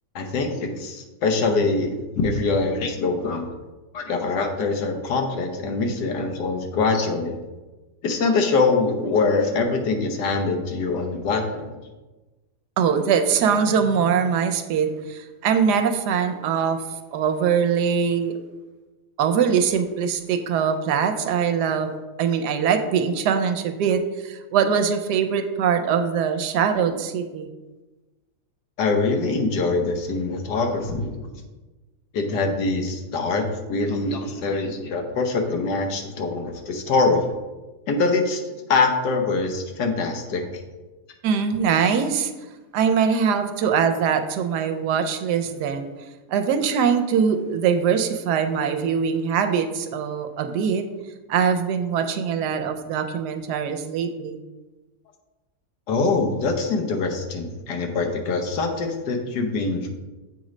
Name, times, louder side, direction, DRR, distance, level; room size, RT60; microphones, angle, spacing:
voice 1, 0.1-3.5 3.9-7.3 8.0-11.7 28.8-31.2 32.1-33.4 33.7-37.3 37.9-38.4 38.7-40.4 55.9-59.9, left 3 dB, 85° left, 3 dB, 1.5 m, -23 dB
voice 2, 12.8-16.8 17.1-18.4 19.2-21.9 22.2-27.5 41.2-42.3 42.7-45.9 46.3-50.8 51.3-54.4, right 7 dB, 85° right, 7 dB, 1.1 m, -22 dB
7.6 x 3.1 x 4.9 m, 1.2 s
omnidirectional pair, 1.7 m